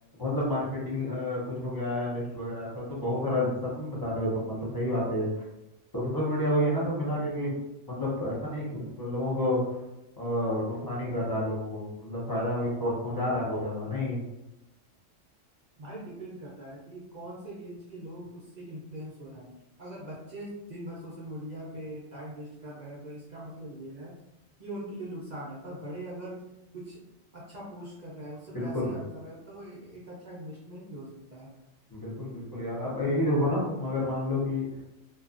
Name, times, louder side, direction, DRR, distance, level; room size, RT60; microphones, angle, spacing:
voice 1, 0.2-5.3 5.9-7.6 7.9-9.8 10.2-14.2 28.5-28.9 31.9-34.6, left 1 dB, 35° left, -6 dB, 0.4 m, -29 dB
voice 2, 15.8-19.5 19.8-24.1 24.6-26.4 26.7-27.0 27.3-31.5, right 1 dB, 55° right, -6 dB, 0.5 m, -42 dB
2.6 x 2.3 x 2.4 m, 0.93 s
omnidirectional pair, 1.4 m